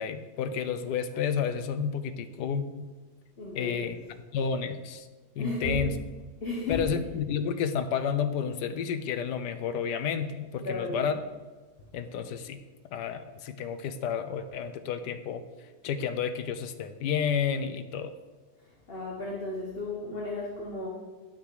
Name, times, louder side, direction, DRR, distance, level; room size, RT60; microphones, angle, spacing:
voice 1, 0.0-2.9 3.5-4.0 4.3-5.1 5.4-5.9 6.7-11.2 11.9-12.6 12.9-15.4 15.8-18.1, left 7 dB, 80° left, 10 dB, 1.2 m, -31 dB
voice 2, 3.4-3.9 5.4-5.9 6.4-6.9 10.6-11.1 18.6-20.9, left 2 dB, 35° left, -3 dB, 1.4 m, -34 dB
11.0 x 5.9 x 4.9 m, 1.3 s
omnidirectional pair, 1.8 m